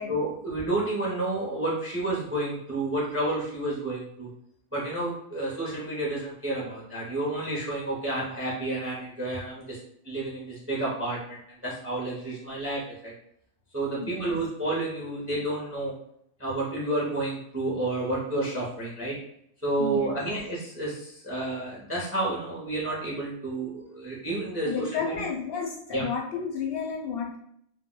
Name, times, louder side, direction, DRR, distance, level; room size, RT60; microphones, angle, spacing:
voice 1, 0.1-4.3 4.7-9.8 10.0-11.4 11.6-13.1 13.7-15.9 16.4-19.2 19.6-25.2 25.9-26.0, right 2 dB, 20° right, -4 dB, 0.4 m, -30 dB
voice 2, 14.0-14.4 19.8-20.2 24.6-27.4, left 5 dB, 65° left, -1 dB, 0.7 m, -32 dB
2.2 x 2.1 x 3.6 m, 0.71 s
omnidirectional pair, 1.2 m